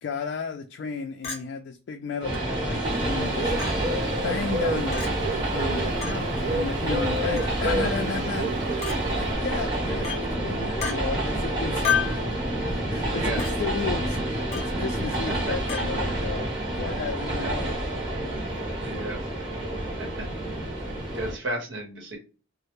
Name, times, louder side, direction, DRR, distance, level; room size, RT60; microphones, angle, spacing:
voice 1, 0.0-3.5 4.2-5.1 5.5-8.5 9.2-12.2 12.9-16.5 16.8-17.8 18.1-18.4, left 5 dB, 60° left, 0.3 m, -33 dB
Chink clink, 1.2-1.4 2.3-2.4 3.6-3.7 4.9-5.1 6.0-6.2 7.4-7.6 8.8-9.0 10.0-10.2 10.8-11.0 11.8-12.2 13.4-13.5 14.5-14.7 15.7-15.9, left 8 dB, 35° left, 0.7 m, -29 dB
Train, 2.2-21.3, right 1 dB, 20° right, 0.9 m, -28 dB
Bird, 2.8-9.3, right 2 dB, 40° right, 0.3 m, -31 dB
voice 2, 11.6-12.3 13.0-13.4 17.4-17.5 18.8-19.6 20.0-20.1 21.1-22.2, right 1 dB, 70° right, 0.9 m, -35 dB
2.1 x 2.0 x 2.8 m
head